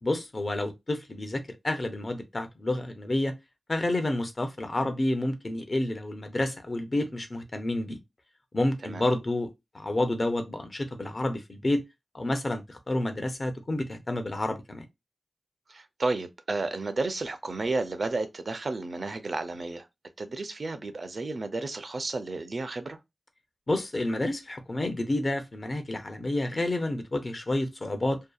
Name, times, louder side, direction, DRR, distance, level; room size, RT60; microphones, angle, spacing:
voice 1, 0.0-3.3 3.7-8.0 8.5-9.5 9.7-11.8 12.1-14.8 23.7-28.2, left 1 dB, 45° left, 0.5 m, -29 dB
voice 2, 15.7-19.9 20.2-23.0, right 3 dB, 60° right, 0.4 m, -32 dB
2.7 x 2.2 x 2.3 m
wide cardioid pair, 80°, 0 cm